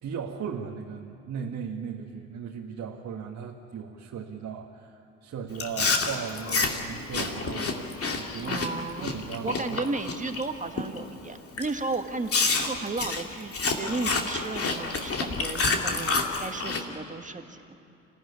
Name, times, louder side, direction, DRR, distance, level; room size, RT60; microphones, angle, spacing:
voice 1, 0.0-8.6 9.0-9.8, right 7 dB, 45° right, -1 dB, 1.9 m, -37 dB
Chewing mastication, 5.6-10.4 10.8-11.1 11.6-11.7 12.3-16.8, left 4 dB, 35° left, 2.9 m, -28 dB
voice 2, 8.4-9.1 9.4-12.3 12.6-17.8, right 3 dB, 20° right, 6 dB, 2.0 m, -34 dB
27.0 x 16.0 x 10.0 m, 2.8 s
hypercardioid pair, 60°, 37 cm